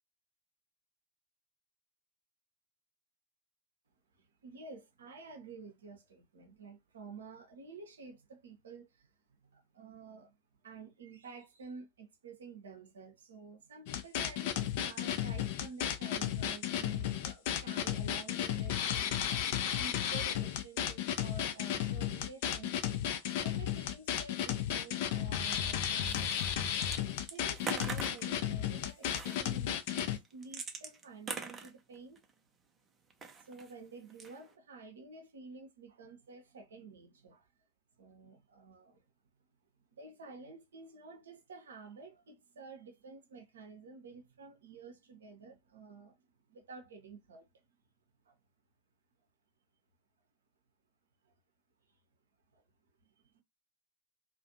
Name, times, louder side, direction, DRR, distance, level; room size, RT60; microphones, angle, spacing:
voice 1, 4.1-9.1 9.4-19.4 19.8-26.4 27.3-32.2 33.4-37.5 38.0-39.0 39.9-47.6 48.2-48.4 51.2-51.3 52.5-52.6 53.0-53.4, right 4 dB, 65° right, 0.6 m, -51 dB
sound 1, 13.9-30.2, left 10 dB, 50° left, 0.4 m, -34 dB
sound 2, 26.0-27.0 27.3-28.3 29.0-29.4 29.9-32.3 33.1-33.7 34.1-34.5, right 5 dB, 20° right, 0.5 m, -42 dB
2.4 x 2.1 x 2.6 m
figure-of-eight pair, 90°, 0 cm